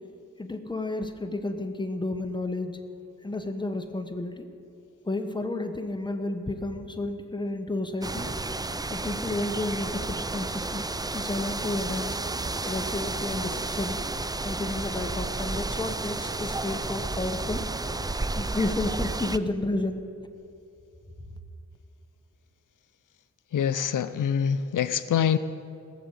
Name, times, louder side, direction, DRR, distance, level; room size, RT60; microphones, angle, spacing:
voice 1, 0.4-2.8 3.2-4.4 5.0-8.3 8.9-10.9 11.1-12.2 12.6-14.0 14.4-17.6 18.3-20.0, left 2 dB, 15° left, 6 dB, 1.2 m, -31 dB
sound 1, 8.0-19.4, right 2 dB, 15° right, 0.4 m, -32 dB
voice 2, 23.5-25.4, left 8 dB, 90° left, 13 dB, 0.5 m, -25 dB
18.0 x 7.1 x 8.1 m, 2.6 s
wide cardioid pair, 80°, 30 cm